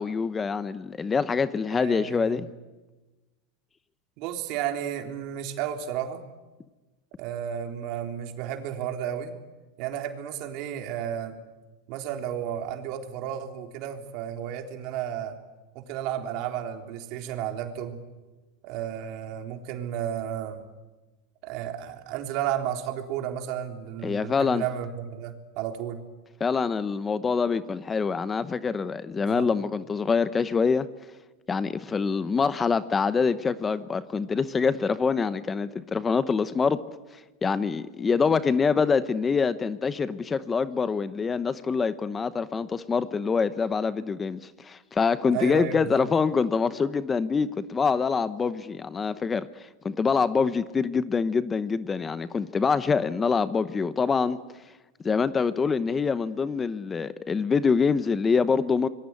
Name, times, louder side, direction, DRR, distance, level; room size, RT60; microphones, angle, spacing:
voice 1, 0.0-2.5 24.0-24.6 26.4-30.9 31.5-36.8 37.1-54.4 55.0-58.9, left 5 dB, 20° left, 14 dB, 0.9 m, -25 dB
voice 2, 1.7-2.5 4.2-6.2 7.2-9.3 9.8-11.4 11.9-15.4 15.7-18.0 18.6-20.6 21.4-26.0 29.2-29.5 45.3-46.0, right 10 dB, 55° right, 5 dB, 3.7 m, -33 dB
26.5 x 22.0 x 9.8 m, 1.2 s
supercardioid pair, 135°, 0 cm